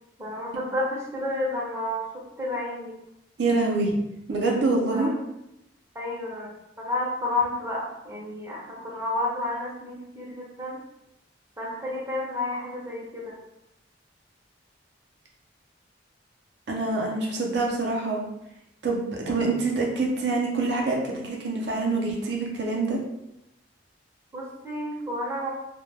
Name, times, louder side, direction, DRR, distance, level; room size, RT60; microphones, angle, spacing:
voice 1, 0.2-3.0 4.9-5.1 5.9-10.8 11.6-13.4 24.3-25.5, left 1 dB, 15° right, -5 dB, 0.5 m, -31 dB
voice 2, 3.4-3.9 4.3-5.1 16.7-18.3 18.8-23.0, right 3 dB, 60° right, -1 dB, 0.5 m, -25 dB
2.1 x 2.1 x 3.2 m, 0.85 s
head